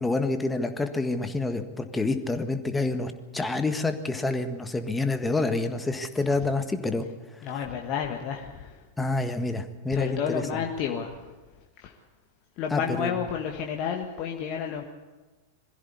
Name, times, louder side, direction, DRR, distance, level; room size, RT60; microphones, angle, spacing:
voice 1, 0.0-7.0 9.0-10.6 12.7-13.1, left 3 dB, 10° left, 8 dB, 1.6 m, -28 dB
voice 2, 7.4-8.8 9.9-11.3 11.8-11.9 12.6-14.8, left 7 dB, 40° left, 2 dB, 1.5 m, -31 dB
22.0 x 15.5 x 8.3 m, 1.2 s
figure-of-eight pair, 90°, 0 cm